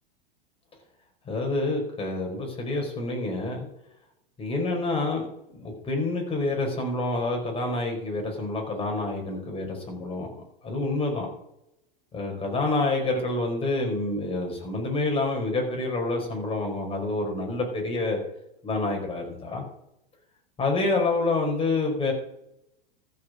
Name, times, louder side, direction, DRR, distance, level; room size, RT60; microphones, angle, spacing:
voice 1, 1.2-3.7 4.4-5.3 5.5-11.3 12.1-18.2 18.6-19.6 20.6-22.1, left 2 dB, 20° left, 1 dB, 5.0 m, -28 dB
14.0 x 7.3 x 6.4 m, 0.81 s
hypercardioid pair, 95°, 29 cm